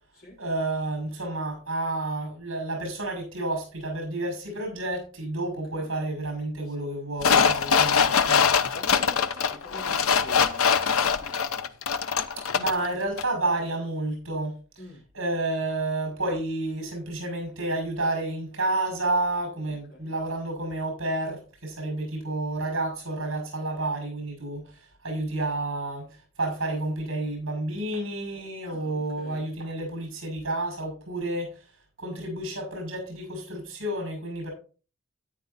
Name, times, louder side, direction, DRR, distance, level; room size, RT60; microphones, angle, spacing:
voice 1, 0.4-8.5 12.5-14.6 15.1-31.5 32.0-34.5, right 2 dB, 70° right, 5.7 m, -30 dB
sound 1, 7.2-12.9 13.2-13.3, left 6 dB, 90° left, 0.8 m, -23 dB
voice 2, 8.7-11.7 14.8-15.0 19.7-20.1 28.6-29.5, left 1 dB, 45° left, 4.1 m, -47 dB
13.5 x 9.4 x 2.7 m
head